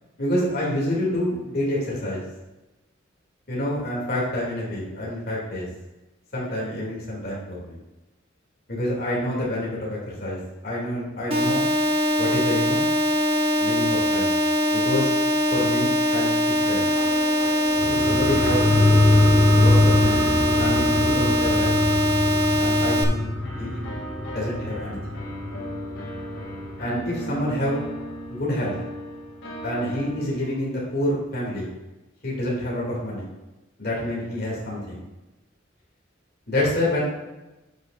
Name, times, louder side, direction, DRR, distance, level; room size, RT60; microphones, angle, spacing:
voice 1, 0.2-2.2 3.5-5.7 6.3-7.8 8.7-11.6 12.2-12.8 13.6-14.3 14.7-15.1 15.5-16.9 17.9-18.6 19.5-20.3 20.6-21.8 22.6-23.3 23.6-23.8 24.3-25.2 26.8-27.8 28.3-28.8 29.6-31.7 32.2-33.3 33.8-35.0 36.5-37.0, left 1 dB, 50° left, -5 dB, 2.5 m, -27 dB
sound 1, 11.3-23.0, equal, 30° right, 0.9 m, -22 dB
sound 2, 16.6-22.4 23.4-30.8, equal, 75° left, 2.2 m, -36 dB
sound 3, 17.7-26.8 27.1-27.2, left 1 dB, 10° right, 1.6 m, -23 dB
12.0 x 6.5 x 2.5 m, 1.1 s
head